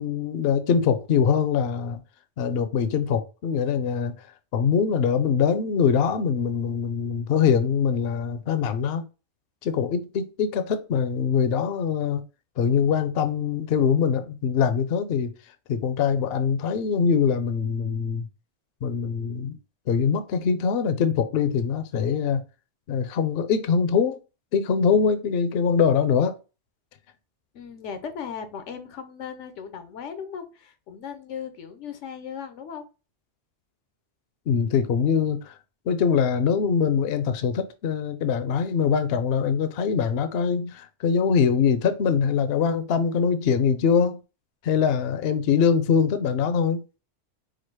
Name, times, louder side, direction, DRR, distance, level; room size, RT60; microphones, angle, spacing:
voice 1, 0.0-2.0 2.4-4.3 4.5-9.0 9.6-12.2 12.6-15.3 15.7-18.3 18.8-19.6 19.9-22.4 22.9-24.2 24.5-26.4 34.5-35.6 35.9-44.2 44.6-46.8, left 6 dB, 65° left, 0.8 m, -23 dB
voice 2, 27.5-32.8, left 7 dB, 85° left, 1.0 m, -37 dB
4.8 x 2.0 x 4.5 m
omnidirectional pair, 1.2 m